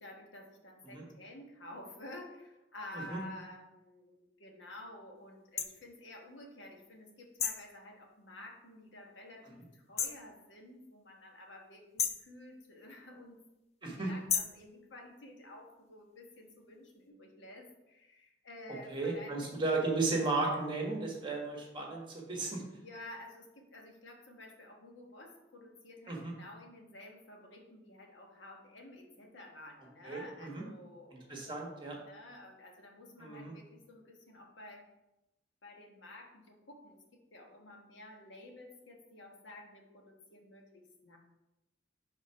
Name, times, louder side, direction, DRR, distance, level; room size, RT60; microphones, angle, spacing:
voice 1, 0.0-13.4 13.9-19.6 22.8-31.3 32.1-34.8 35.6-41.2, left 1 dB, 85° left, 1 dB, 1.2 m, -51 dB
sound 1, 5.6-5.7 7.4-7.7 10.0-10.3 12.0-12.3 14.3-14.6, left 7 dB, 35° left, 0.4 m, -32 dB
voice 2, 18.9-22.6 26.1-26.3 30.0-30.6 31.3-32.0 33.2-33.5, right 3 dB, 25° right, -1 dB, 1.4 m, -34 dB
5.1 x 3.8 x 5.6 m, 0.94 s
head